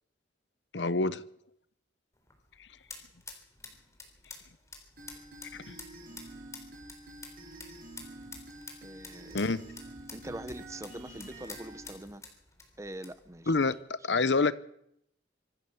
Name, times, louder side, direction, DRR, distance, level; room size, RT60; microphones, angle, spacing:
voice 1, 0.7-1.2 2.6-2.7 5.5-5.8 9.3-9.6 13.5-13.8 14.0-14.5, left 3 dB, 75° left, 0.9 m, -27 dB
sound 1, 2.1-13.8, left 4 dB, 15° left, 3.6 m, -51 dB
sound 2, 5.0-12.0, right 1 dB, 50° right, 6.3 m, -48 dB
sound 3, 7.0-12.2, equal, 35° left, 5.4 m, -58 dB
voice 2, 8.8-9.4 10.1-12.2 12.8-13.5 14.1-14.3, right 1 dB, 15° right, 0.9 m, -44 dB
25.0 x 15.5 x 7.1 m
head